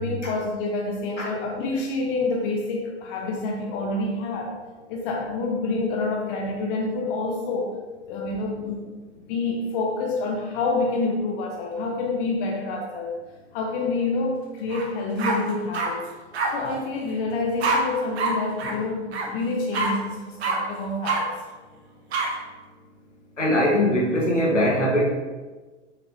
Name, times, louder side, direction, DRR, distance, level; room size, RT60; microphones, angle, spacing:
voice 1, 0.0-4.5 4.9-7.7 8.1-9.0 9.2-13.1 13.5-16.0 16.5-21.3, left 3 dB, 45° left, 0 dB, 1.2 m, -27 dB
sound 1, 14.7-14.9 15.2-15.9 16.3-16.5 17.6-17.8 18.2-18.3 18.6-18.7 19.1-19.3 19.7-19.9 20.4-20.6 21.0-21.2 22.1-22.3, right 4 dB, 60° right, 1.3 m, -25 dB
voice 2, 23.4-25.0, left 1 dB, 85° left, -2 dB, 1.7 m, -21 dB
6.0 x 6.0 x 3.6 m, 1.3 s
figure-of-eight pair, 90°, 35 cm